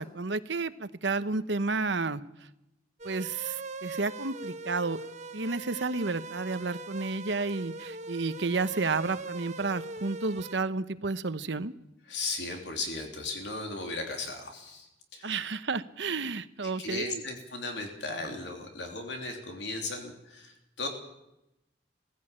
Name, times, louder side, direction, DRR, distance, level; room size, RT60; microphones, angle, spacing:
voice 1, 0.0-2.2 3.0-5.0 5.3-11.7 15.2-17.2, right 3 dB, 80° right, 12 dB, 1.0 m, -31 dB
sound 1, 3.0-10.6, right 3 dB, 40° right, 1.1 m, -41 dB
voice 2, 12.1-15.4 16.8-20.9, left 3 dB, 75° left, 3 dB, 3.3 m, -36 dB
19.0 x 16.0 x 8.7 m, 0.90 s
head